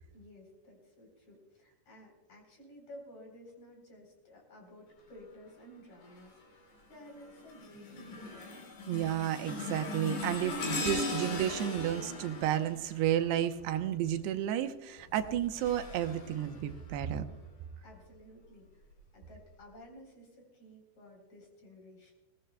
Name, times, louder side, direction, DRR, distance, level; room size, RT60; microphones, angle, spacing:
voice 1, 0.1-8.6 17.8-22.1, left 1 dB, 45° left, 1 dB, 4.8 m, -54 dB
sound 1, 6.0-6.4 6.9-13.7 15.0-17.2 17.8-18.0 18.9-19.0, left 3 dB, 70° left, 5.4 m, -40 dB
voice 2, 8.9-17.2, right 11 dB, 90° right, 7 dB, 2.9 m, -32 dB
20.5 x 19.5 x 2.2 m, 1.0 s
omnidirectional pair, 4.7 m